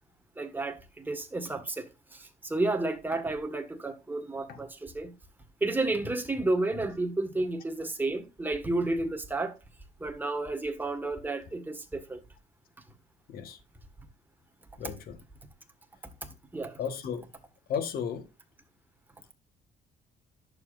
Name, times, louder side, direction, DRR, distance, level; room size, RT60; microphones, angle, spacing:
voice 1, 0.4-5.1 5.6-9.5 10.0-12.2 16.5-16.8, right 2 dB, 10° right, 1.6 m, -31 dB
voice 2, 13.3-13.6 14.8-15.2 16.8-17.3 17.7-18.3, left 7 dB, 60° left, 1.4 m, -34 dB
11.0 x 7.0 x 2.5 m
cardioid pair, 110°, 17 cm